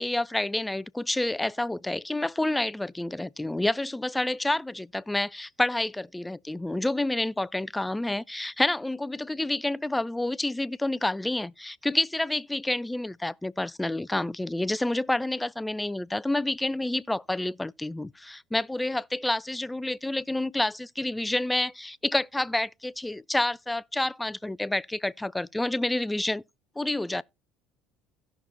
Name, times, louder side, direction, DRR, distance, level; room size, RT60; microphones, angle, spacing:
voice 1, 0.0-26.4 26.8-27.2, left 1 dB, 10° left, 0.4 m, -29 dB
17.0 x 5.9 x 2.8 m
hypercardioid pair, 70°, 0 cm